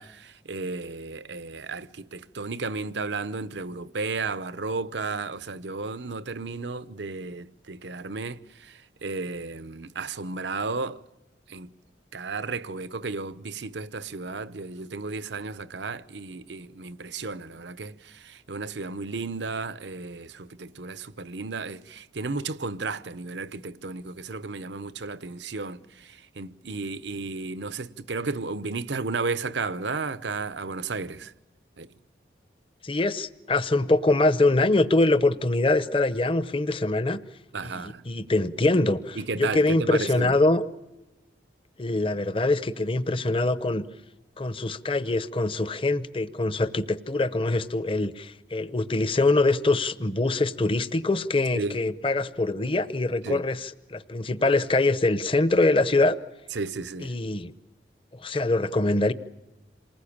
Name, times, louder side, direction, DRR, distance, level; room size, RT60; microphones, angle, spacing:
voice 1, 0.0-11.0 11.5-11.7 12.1-31.3 31.8-31.9 37.5-38.0 39.2-40.3 51.5-51.8 53.2-53.4 56.5-57.1, right 3 dB, 75° right, 0.8 m, -33 dB
voice 2, 32.8-37.2 37.6-40.6 41.8-43.8 44.4-56.2 57.0-57.5 58.2-59.1, left 2 dB, 30° left, 0.8 m, -24 dB
28.0 x 20.0 x 8.7 m
head